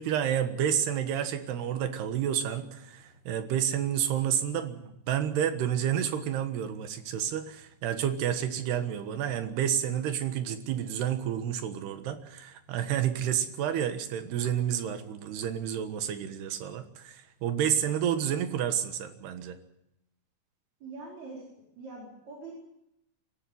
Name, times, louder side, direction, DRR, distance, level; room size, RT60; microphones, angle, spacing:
voice 1, 0.0-19.6, right 9 dB, 75° right, 9 dB, 3.4 m, -30 dB
voice 2, 20.8-21.5 21.8-22.6, right 3 dB, 45° right, -3 dB, 5.7 m, -43 dB
25.0 x 13.5 x 9.3 m, 0.82 s
omnidirectional pair, 4.8 m